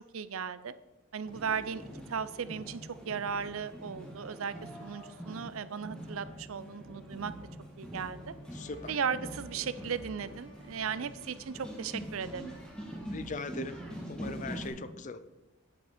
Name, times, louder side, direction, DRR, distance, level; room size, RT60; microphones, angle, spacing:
voice 1, 0.1-0.7 1.1-4.6 4.8-7.3 7.8-8.3 8.9-12.5, right 6 dB, 80° right, 15 dB, 0.5 m, -36 dB
sound 1, 1.2-14.7, right 1 dB, 5° left, 1.8 m, -44 dB
sound 2, 8.1-13.5, equal, 60° left, 2.2 m, -59 dB
voice 2, 8.5-9.0 13.1-13.8 14.1-15.2, left 3 dB, 35° left, 13 dB, 0.5 m, -40 dB
9.4 x 7.9 x 5.0 m, 1.1 s
head